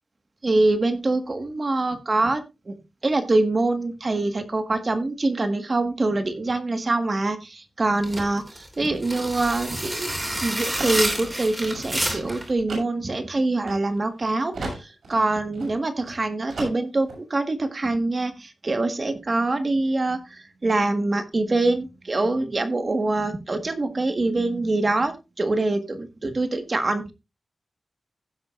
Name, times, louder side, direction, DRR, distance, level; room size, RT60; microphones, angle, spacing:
voice 1, 0.4-2.7 3.0-14.7 15.1-20.2 20.6-27.1, right 2 dB, 30° right, 8 dB, 1.6 m, -24 dB
sound 1, 8.0-12.5, right 1 dB, 15° right, 3.3 m, -28 dB
sound 2, 8.9-14.2 14.5-16.2 16.5-17.2, right 2 dB, 70° right, 6.7 m, -37 dB
16.0 x 7.8 x 2.5 m, 0.26 s
wide cardioid pair, 175°, 0 cm